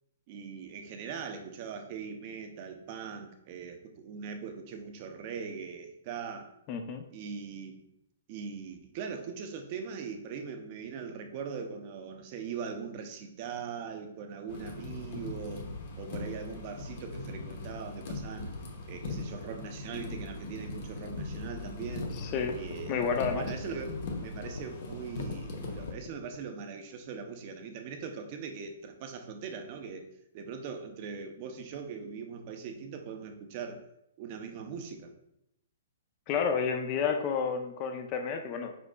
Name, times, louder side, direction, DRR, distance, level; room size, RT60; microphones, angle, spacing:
voice 1, 0.3-6.5 7.1-7.9 8.3-15.7 16.0-18.6 18.9-22.1 22.5-30.1 30.3-33.9 34.2-35.1, right 6 dB, 35° right, 6 dB, 0.6 m, -41 dB
voice 2, 6.7-7.0 22.2-22.6 22.9-23.5 36.3-38.7, left 6 dB, 30° left, 5 dB, 0.5 m, -30 dB
sound 1, 14.5-25.9, left 2 dB, 50° left, 1.0 m, -40 dB
sound 2, 21.9-26.5, left 4 dB, 85° left, 0.5 m, -44 dB
5.1 x 4.5 x 2.2 m, 0.79 s
hypercardioid pair, 155°, 0 cm